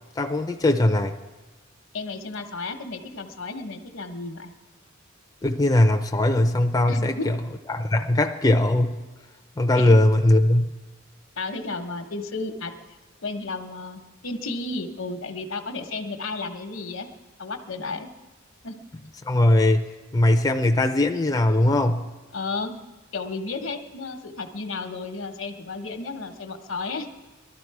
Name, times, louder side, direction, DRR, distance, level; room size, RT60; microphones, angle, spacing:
voice 1, 0.2-1.2 5.4-7.4 7.7-9.0 9.6-10.7 19.3-19.8 20.1-22.1, left 1 dB, 20° left, 5 dB, 0.4 m, -20 dB
voice 2, 1.9-4.5 6.9-7.3 9.8-9.9 11.4-12.7 13.2-17.1 17.4-18.1 18.6-18.8 22.3-22.8 23.1-27.1, left 3 dB, 75° left, 7 dB, 1.0 m, -33 dB
20.0 x 12.5 x 4.7 m, 1.2 s
head